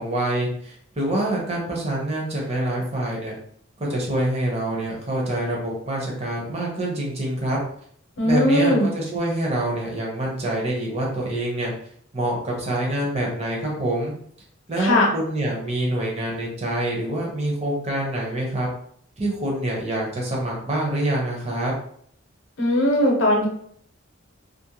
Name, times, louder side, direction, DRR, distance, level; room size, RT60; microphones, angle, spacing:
voice 1, 0.0-3.3 3.8-7.6 8.2-11.7 12.1-14.1 14.7-18.7 19.2-21.7, right 1 dB, 30° right, -2 dB, 0.6 m, -26 dB
voice 2, 8.2-8.9 14.8-15.1 22.6-23.5, left 1 dB, 60° left, 0 dB, 0.7 m, -19 dB
2.4 x 2.1 x 2.8 m, 0.64 s
head